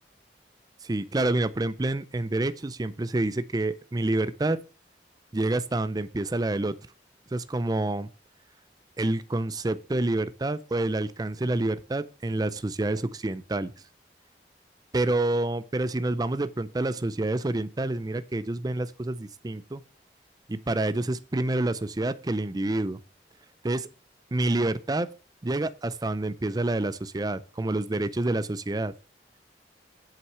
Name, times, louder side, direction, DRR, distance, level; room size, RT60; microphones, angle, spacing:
voice 1, 0.8-4.6 5.3-6.8 7.3-8.1 9.0-13.7 14.9-19.8 20.5-23.0 23.6-23.9 24.3-25.1 25.4-28.9, right 2 dB, 20° right, 0.5 m, -28 dB
7.9 x 6.0 x 6.6 m
head